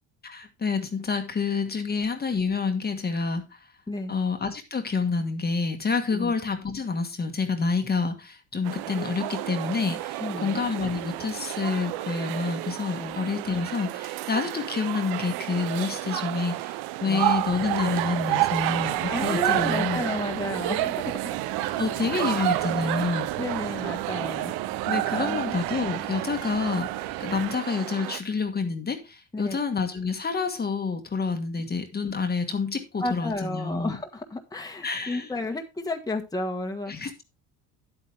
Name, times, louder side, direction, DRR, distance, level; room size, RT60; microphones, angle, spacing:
voice 1, 0.2-3.6 4.1-20.0 21.6-23.3 24.8-34.0 34.8-35.3 36.9-37.2, left 4 dB, 25° left, 1.5 m, -28 dB
sound 1, 8.6-28.2, right 16 dB, 75° right, 0.7 m, -30 dB
voice 2, 10.2-10.6 12.9-13.2 17.1-17.3 19.1-21.3 23.4-24.5 25.1-25.4 29.3-29.6 33.0-37.2, left 2 dB, 10° left, 1.5 m, -32 dB
Wind, 17.3-27.6, right 12 dB, 60° right, 1.1 m, -39 dB
10.5 x 8.5 x 3.4 m
supercardioid pair, 105°, 38 cm